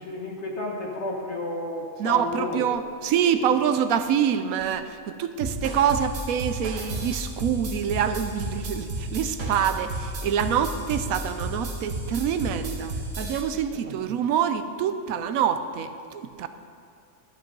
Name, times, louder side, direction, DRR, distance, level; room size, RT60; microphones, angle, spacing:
voice 1, 0.0-2.7 3.3-3.5 13.7-14.0, left 1 dB, 55° left, -2 dB, 1.8 m, -32 dB
voice 2, 2.0-16.5, right 8 dB, 85° right, 10 dB, 1.0 m, -26 dB
sound 1, 5.4-13.4, right 1 dB, 50° right, 1.3 m, -33 dB
12.0 x 7.6 x 5.3 m, 2.3 s
omnidirectional pair, 1.4 m